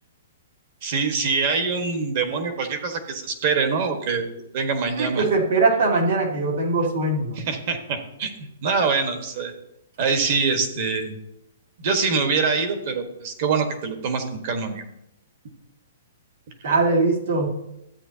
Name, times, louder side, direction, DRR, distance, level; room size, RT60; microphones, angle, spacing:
voice 1, 0.8-4.3 4.5-5.2 7.4-9.5 10.0-11.1 11.8-14.8 16.6-16.7, right 5 dB, 45° right, 6 dB, 1.5 m, -24 dB
voice 2, 5.0-7.4 16.6-17.5, right 3 dB, 70° right, -1 dB, 2.8 m, -21 dB
13.5 x 8.8 x 2.9 m, 0.83 s
hypercardioid pair, 165°, 0 cm